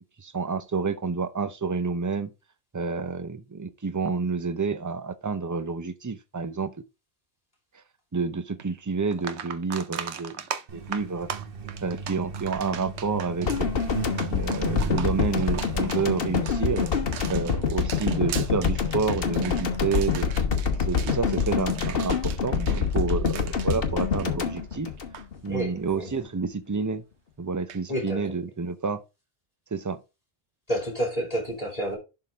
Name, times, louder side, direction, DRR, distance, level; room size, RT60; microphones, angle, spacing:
voice 1, 0.2-2.3 2.7-6.8 8.1-10.4 10.7-11.3 11.8-13.7 14.3-16.9 17.3-20.3 20.9-24.9 25.4-27.0 27.4-29.0 29.7-30.0, right 4 dB, 20° right, 0.5 m, -29 dB
sound 1, 8.6-8.7 9.1-24.7 25.0-25.2 27.7-27.8, right 8 dB, 90° right, 1.0 m, -39 dB
Truck, 10.7-23.0, right 6 dB, 60° right, 1.2 m, -40 dB
sound 2, 13.5-25.6 25.9-26.1, left 6 dB, 60° left, 1.2 m, -26 dB
voice 2, 25.5-26.1 27.9-28.2 30.7-32.0, equal, 35° left, 2.9 m, -29 dB
11.0 x 3.8 x 3.5 m
omnidirectional pair, 1.1 m